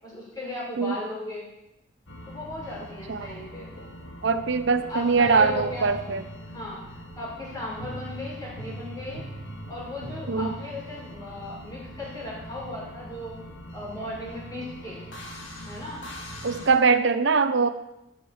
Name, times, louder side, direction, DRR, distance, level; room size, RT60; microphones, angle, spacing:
voice 1, 0.0-1.5 2.3-3.7 4.9-5.9 6.5-9.2 9.7-13.4 13.7-15.1 15.6-16.0 16.5-16.7, left 2 dB, 20° left, -6 dB, 6.4 m, -36 dB
sound 1, 2.1-16.7, equal, 75° left, 2.5 m, -41 dB
voice 2, 4.2-6.2 10.3-10.5 16.4-17.7, right 4 dB, 65° right, 11 dB, 0.7 m, -22 dB
14.0 x 7.5 x 7.2 m, 0.89 s
head